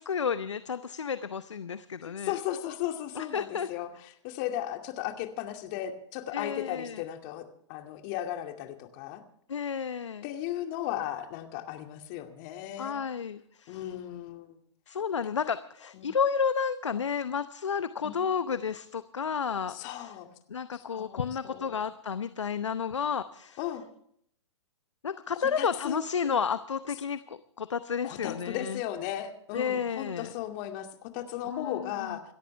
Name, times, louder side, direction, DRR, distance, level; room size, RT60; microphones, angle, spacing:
voice 1, 0.0-2.3 3.1-3.7 6.3-7.0 9.5-10.2 12.8-13.8 14.9-20.1 20.5-23.6 25.0-28.8 29.5-30.3 31.5-32.2, left 6 dB, 80° left, 13 dB, 0.8 m, -31 dB
voice 2, 2.0-9.2 10.2-13.0 13.7-14.6 15.9-16.1 18.0-18.3 19.7-20.3 20.7-21.9 23.6-23.8 25.6-26.0 28.0-32.2, left 12 dB, 40° left, 5 dB, 2.4 m, -36 dB
28.0 x 13.5 x 3.4 m, 0.68 s
figure-of-eight pair, 115°, 15 cm